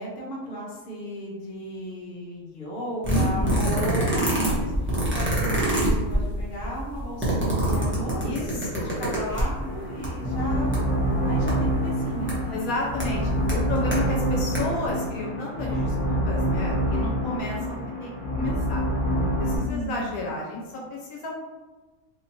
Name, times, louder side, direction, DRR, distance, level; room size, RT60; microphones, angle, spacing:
voice 1, 0.0-8.5 8.8-10.8 11.2-12.7 19.6-20.1, equal, 40° left, -4 dB, 0.9 m, -35 dB
voice 2, 3.0-3.6 8.2-9.0 12.5-18.8 19.4-21.3, left 2 dB, 75° left, -1 dB, 1.1 m, -32 dB
sound 1, 3.0-9.6 10.0-10.1 10.3-10.8 11.5-11.6 12.3-12.4 13.0-13.1 13.5-14.0 14.4-14.6 14.8-14.9, right 1 dB, 10° right, 0.7 m, -25 dB
sound 2, 9.6-19.6, equal, 20° left, 1.3 m, -26 dB
3.6 x 2.8 x 2.8 m, 1.2 s
omnidirectional pair, 1.6 m